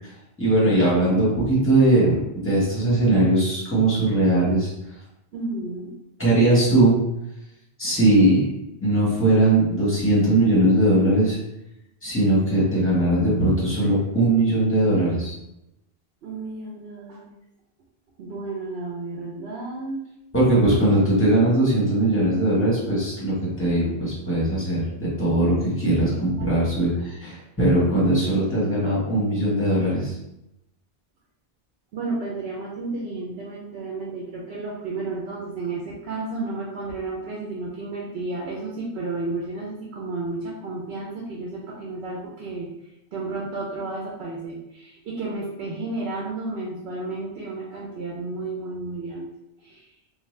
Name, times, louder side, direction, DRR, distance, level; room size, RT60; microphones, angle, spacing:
voice 1, 0.4-4.7 6.2-7.0 7.8-8.5 8.8-11.4 12.0-15.3 20.3-30.1, right 1 dB, 15° left, -7 dB, 1.2 m, -20 dB
voice 2, 5.3-5.9 16.2-17.3 18.2-20.1 26.1-26.6 31.9-42.7 43.1-49.3 49.6-49.9, right 3 dB, 85° right, -3 dB, 0.8 m, -32 dB
2.6 x 2.3 x 3.1 m, 0.86 s
omnidirectional pair, 1.0 m